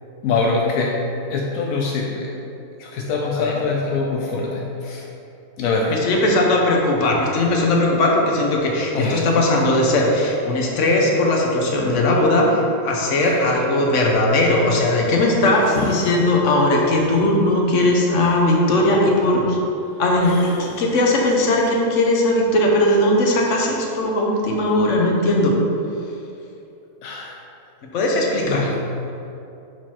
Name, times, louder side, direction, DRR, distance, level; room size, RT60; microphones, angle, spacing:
voice 1, 0.2-1.0 1.3-2.3 2.8-5.1 5.6-6.0 8.9-9.4 13.2-13.4 15.7-15.9 20.2-20.7 27.0-27.4 28.4-28.8, left 4 dB, 85° left, -1 dB, 1.0 m, -24 dB
voice 2, 5.9-19.6 20.0-25.5 27.9-28.7, left 1 dB, 65° left, -1 dB, 1.2 m, -18 dB
6.5 x 4.5 x 4.3 m, 2.8 s
omnidirectional pair, 1.4 m